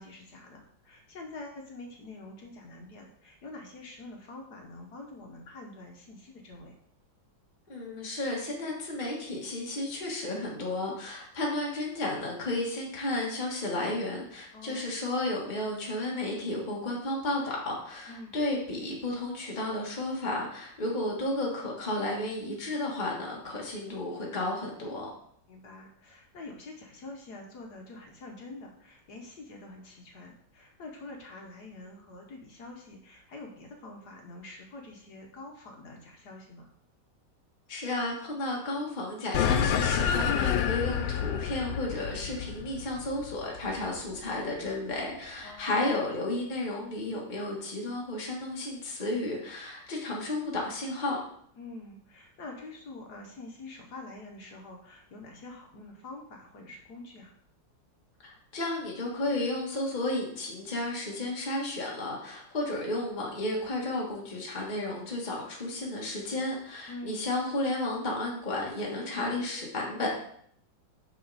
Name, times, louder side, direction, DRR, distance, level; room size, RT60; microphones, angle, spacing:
voice 1, 0.0-6.7 14.5-14.9 18.1-18.3 25.5-36.7 45.4-45.8 51.6-57.3 66.9-67.2, left 2 dB, 60° left, 1 dB, 1.6 m, -46 dB
voice 2, 7.7-25.1 37.7-51.2 58.2-70.1, left 2 dB, 25° left, -3 dB, 1.6 m, -33 dB
sound 1, 39.3-44.1, left 8 dB, 90° left, 1.3 m, -28 dB
6.4 x 6.2 x 4.1 m, 0.65 s
omnidirectional pair, 2.0 m